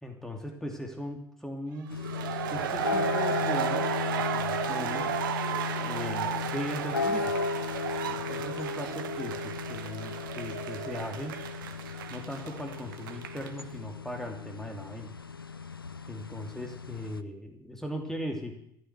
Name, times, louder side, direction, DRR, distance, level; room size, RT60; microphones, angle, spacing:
voice 1, 0.0-1.9 2.5-3.9 4.1-5.0 5.8-7.3 8.0-11.3 12.1-15.1 16.1-18.5, equal, 5° left, 2 dB, 2.8 m, -38 dB
sound 1, 1.9-17.2, left 4 dB, 90° left, 0.5 m, -35 dB
sound 2, 2.0-13.6, right 9 dB, 70° right, 1.1 m, -34 dB
15.0 x 9.5 x 8.2 m, 0.74 s
figure-of-eight pair, 60°, 11 cm